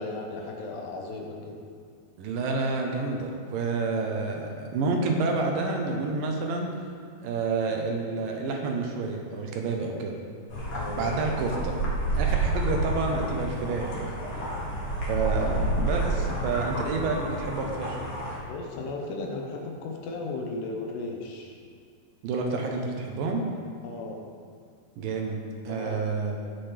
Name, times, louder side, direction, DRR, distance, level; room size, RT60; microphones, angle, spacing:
voice 1, 0.0-1.6 10.7-11.4 18.5-21.5 22.6-22.7 23.8-24.2 25.7-26.0, left 3 dB, 85° left, 1 dB, 3.1 m, -36 dB
voice 2, 2.2-6.7 7.2-10.1 11.0-11.7 12.2-14.1 15.1-18.0 22.2-23.5 25.0-25.4 25.7-26.4, right 3 dB, 70° right, 2 dB, 2.3 m, -29 dB
sound 1, 10.5-18.4, right 2 dB, 45° left, 2.0 m, -29 dB
17.5 x 6.1 x 3.4 m, 2.1 s
omnidirectional pair, 4.6 m